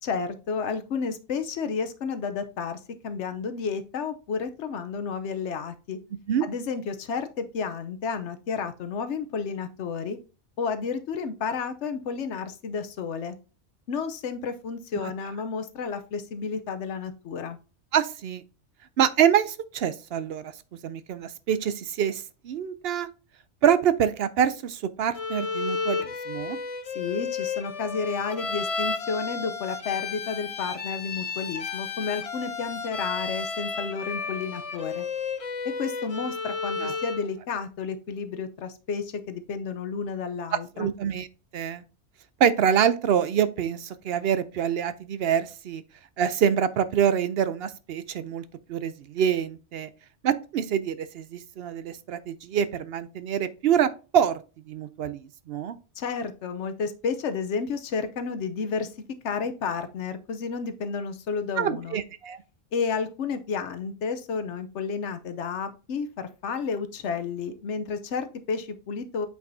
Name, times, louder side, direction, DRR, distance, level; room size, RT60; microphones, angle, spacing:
voice 1, 0.0-6.0 6.4-10.2 10.6-13.4 13.9-17.6 26.9-35.1 35.6-40.9 56.0-58.9 59.2-62.0 62.7-69.3, left 5 dB, 80° left, 1.1 m, -31 dB
voice 2, 17.9-18.4 19.0-20.5 20.8-23.1 23.6-26.6 36.8-36.9 40.5-41.3 41.5-41.8 42.4-45.8 46.2-48.4 48.7-49.9 50.2-55.8 61.6-62.4, right 8 dB, 65° right, 0.7 m, -26 dB
Bowed string instrument, 25.1-37.3, left 5 dB, 40° left, 0.6 m, -32 dB
8.1 x 4.8 x 2.6 m
omnidirectional pair, 1.2 m